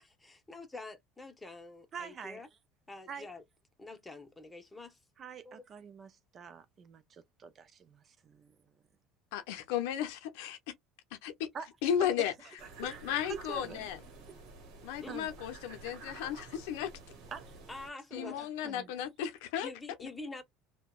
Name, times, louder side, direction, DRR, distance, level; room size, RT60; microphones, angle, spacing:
voice 1, 0.0-2.5 2.9-3.4 3.8-5.0 5.4-5.6 15.0-15.1 17.7-18.5 19.6-20.4, left 3 dB, 10° left, 0.9 m, -46 dB
voice 2, 1.9-2.4 3.1-3.3 5.2-8.5 11.5-11.7 12.0-12.1 12.8-12.9 13.3-13.9 14.3-14.4 15.1-15.3 17.3-17.5 18.2-18.9, right 6 dB, 40° right, 0.5 m, -45 dB
voice 3, 9.3-10.6 11.2-11.5 11.8-12.3 12.8-14.0 14.8-16.9 18.1-19.7, left 9 dB, 75° left, 0.5 m, -34 dB
sound 1, 12.6-17.9, right 3 dB, 65° right, 1.0 m, -50 dB
2.7 x 2.1 x 2.3 m
hypercardioid pair, 85°, 0 cm